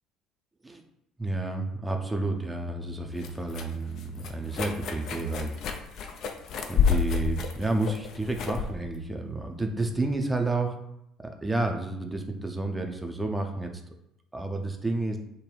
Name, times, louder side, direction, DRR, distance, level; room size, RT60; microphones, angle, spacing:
voice 1, 1.2-5.6 6.7-10.8 11.4-13.7 14.3-15.2, right 2 dB, 10° right, 4 dB, 0.4 m, -30 dB
sound 1, 2.4-10.2, left 7 dB, 50° left, 0.4 m, -31 dB
3.3 x 2.1 x 3.8 m, 0.79 s
figure-of-eight pair, 55°, 0 cm